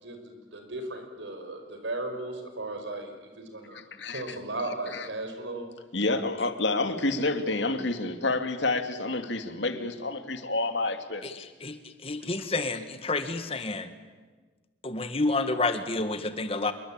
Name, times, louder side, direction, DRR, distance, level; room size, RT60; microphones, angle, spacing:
voice 1, 0.0-3.8 4.1-5.7, right 2 dB, 90° right, 6 dB, 5.4 m, -36 dB
voice 2, 3.7-4.4 4.9-5.1 5.9-11.4, left 2 dB, 80° left, 8 dB, 2.3 m, -29 dB
voice 3, 11.2-13.9 14.8-16.7, left 3 dB, 30° left, 9 dB, 1.8 m, -30 dB
27.0 x 23.0 x 8.9 m, 1.3 s
head